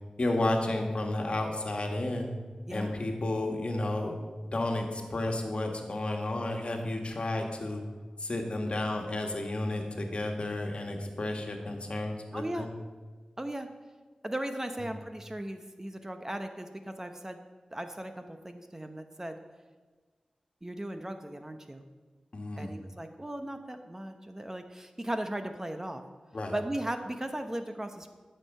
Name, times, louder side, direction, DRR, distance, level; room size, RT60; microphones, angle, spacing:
voice 1, 0.2-2.3 2.7-4.1 4.5-7.8 8.2-12.7 22.3-22.7 26.3-26.5, left 2 dB, 55° left, 3 dB, 1.7 m, -32 dB
voice 2, 2.7-3.0 12.3-12.7 13.4-13.7 14.2-17.4 17.7-19.4 20.6-21.8 22.6-26.0 26.5-28.1, right 1 dB, 20° right, 7 dB, 0.9 m, -37 dB
12.5 x 6.7 x 5.5 m, 1.4 s
cardioid pair, 50°, 2 cm